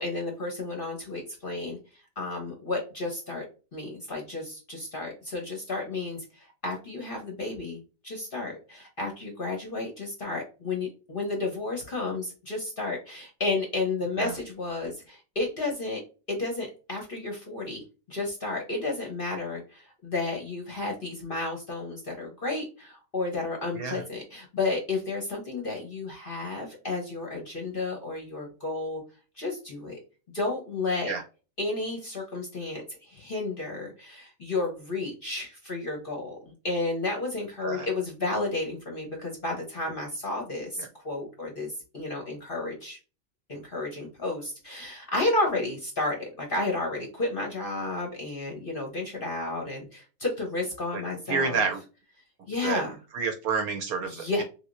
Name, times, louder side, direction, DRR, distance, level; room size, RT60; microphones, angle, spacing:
voice 1, 0.0-3.5 3.7-16.0 16.3-17.8 18.1-29.0 29.4-30.0 30.3-31.1 31.6-43.0 43.5-51.6 52.5-53.0 54.0-54.4, left 2 dB, 40° left, 1 dB, 0.9 m, -32 dB
voice 2, 51.3-51.8 52.6-52.8 53.1-54.4, right 5 dB, 65° right, 4 dB, 1.0 m, -29 dB
3.5 x 3.0 x 2.5 m, 0.33 s
omnidirectional pair, 1.9 m